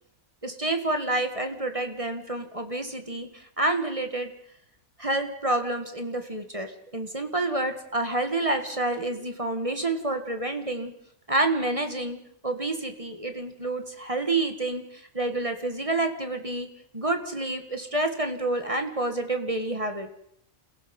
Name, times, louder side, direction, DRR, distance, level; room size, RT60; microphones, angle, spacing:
voice 1, 0.4-4.3 5.0-10.9 11.3-12.2 12.4-16.7 16.9-20.1, right 2 dB, 25° right, 6 dB, 1.9 m, -28 dB
29.0 x 16.0 x 5.5 m, 0.70 s
omnidirectional pair, 1.5 m